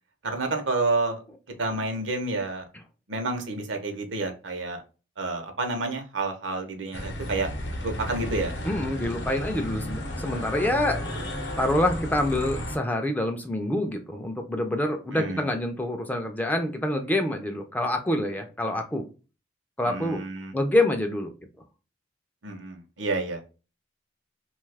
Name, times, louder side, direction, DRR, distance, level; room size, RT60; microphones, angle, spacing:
voice 1, 0.2-1.2 1.6-2.6 3.1-4.8 5.2-7.5 7.8-8.5 15.1-15.5 19.8-20.5 22.4-23.4, right 3 dB, 80° right, 5 dB, 0.7 m, -29 dB
sound 1, 6.9-12.8, left 1 dB, 70° left, 0.7 m, -33 dB
voice 2, 8.6-11.0 11.6-19.0 19.8-20.2 20.5-21.3, left 1 dB, 10° left, 5 dB, 0.3 m, -26 dB
2.7 x 2.3 x 3.2 m, 0.33 s
head